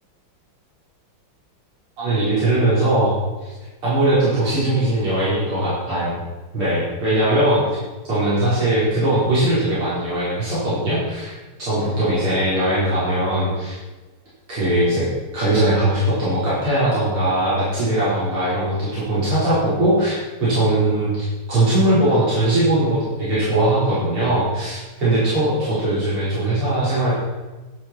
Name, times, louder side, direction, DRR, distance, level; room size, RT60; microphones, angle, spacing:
voice 1, 2.0-3.5 3.8-6.2 6.5-7.6 8.1-11.3 11.6-13.8 14.5-15.1 15.3-27.1, right 1 dB, 80° right, -10 dB, 5.6 m, -20 dB
11.5 x 11.0 x 4.4 m, 1.2 s
omnidirectional pair, 2.4 m